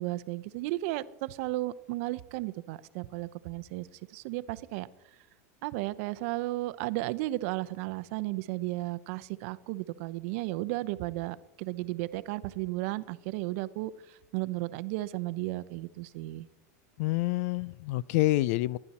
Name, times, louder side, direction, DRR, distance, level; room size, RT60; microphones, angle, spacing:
voice 1, 0.0-4.9 5.6-16.5, right 18 dB, 60° right, 15 dB, 0.7 m, -34 dB
voice 2, 17.0-18.8, left 17 dB, 60° left, 23 dB, 0.4 m, -27 dB
15.5 x 11.0 x 4.2 m, 0.89 s
supercardioid pair, 130°, 9 cm